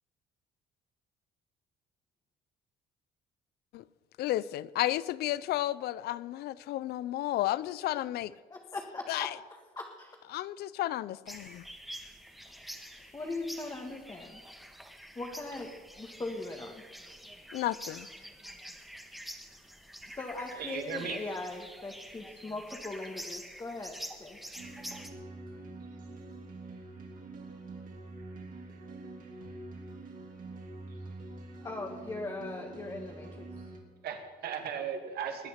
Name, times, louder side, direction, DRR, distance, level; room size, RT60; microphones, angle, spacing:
voice 1, 4.2-8.3 9.1-9.3 10.3-11.7 17.5-18.1, left 14 dB, 70° left, 0.5 m, -32 dB
voice 2, 8.5-9.3 9.8-10.2 12.5-12.8 13.1-14.4 15.2-16.8 20.0-24.4 31.6-33.5, left 2 dB, 20° left, 1.7 m, -40 dB
sound 1, 11.3-25.1, equal, ahead, 1.6 m, -46 dB
voice 3, 20.6-21.2 34.0-35.5, right 7 dB, 70° right, 2.4 m, -36 dB
sound 2, 24.6-33.8, right 2 dB, 55° right, 3.1 m, -45 dB
21.0 x 8.9 x 5.8 m
cardioid pair, 110°, 17 cm